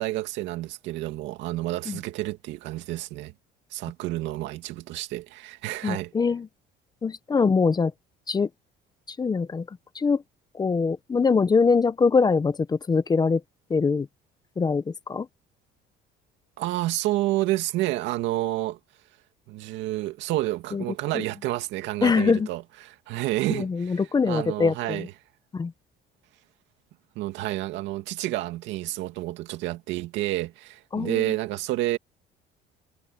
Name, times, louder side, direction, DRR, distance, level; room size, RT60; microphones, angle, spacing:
voice 1, 0.0-3.3 3.7-6.1 16.6-18.8 19.5-25.1 27.2-32.0, right 16 dB, 80° right, 2.3 m, -29 dB
voice 2, 5.8-6.5 7.0-7.9 8.3-8.5 9.1-10.2 10.5-13.4 13.7-14.1 14.6-15.3 20.7-20.8 21.1-21.2 22.0-22.5 23.5-25.1 25.5-25.7 30.9-31.3, left 5 dB, 20° left, 0.8 m, -23 dB
cardioid pair, 120°, 19 cm